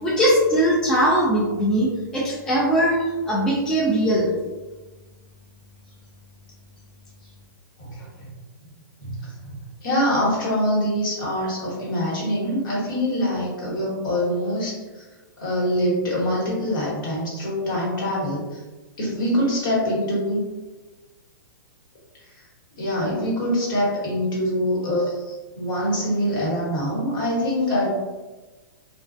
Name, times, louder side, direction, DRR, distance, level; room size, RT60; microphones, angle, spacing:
voice 1, 0.0-3.0 3.3-4.3, right 1 dB, 5° left, -6 dB, 0.3 m, -20 dB
voice 2, 7.8-8.3 9.0-9.6 9.8-15.1 15.4-18.6 19.0-20.4 22.8-27.9, equal, 65° left, -5 dB, 1.3 m, -24 dB
2.3 x 2.3 x 2.4 m, 1.2 s
hypercardioid pair, 150°, 11 cm